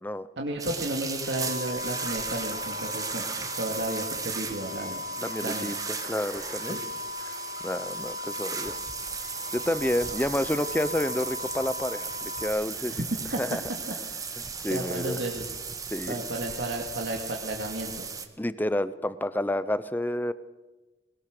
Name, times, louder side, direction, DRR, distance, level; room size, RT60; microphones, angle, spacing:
voice 1, 0.4-5.0 5.4-5.7 6.7-6.8 13.3-13.4 14.7-15.5 16.1-18.0, right 1 dB, 70° right, 0 dB, 2.3 m, -33 dB
sound 1, 0.6-18.3, right 5 dB, 20° right, 1.2 m, -36 dB
sound 2, 1.2-12.5, left 3 dB, 75° left, 3.2 m, -38 dB
voice 2, 5.2-5.7 6.0-6.8 7.2-7.3 7.6-8.8 9.5-13.0 13.4-13.6 14.4-15.2 15.9-16.3 18.4-20.3, left 1 dB, 10° left, 14 dB, 0.7 m, -29 dB
21.0 x 19.5 x 6.7 m, 1.1 s
head